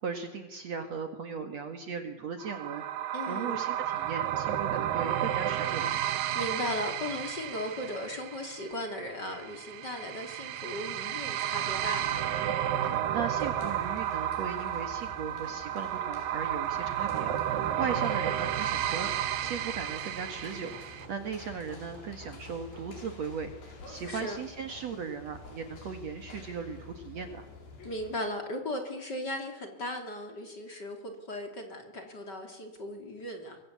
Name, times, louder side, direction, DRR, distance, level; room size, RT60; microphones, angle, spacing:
voice 1, 0.0-6.0 12.8-27.5, right 6 dB, 55° right, 6 dB, 2.5 m, -38 dB
sound 1, 2.4-21.1, right 11 dB, 75° right, 2.8 m, -32 dB
voice 2, 3.1-3.6 6.4-12.2 17.6-17.8 24.1-24.4 27.8-33.6, left 1 dB, 30° left, 4 dB, 3.4 m, -37 dB
sound 2, 11.6-28.2, left 4 dB, 80° left, 6.5 m, -48 dB
Hammer, 14.3-23.1, right 2 dB, 30° right, 4.6 m, -53 dB
25.0 x 23.0 x 8.3 m, 1.0 s
omnidirectional pair, 4.2 m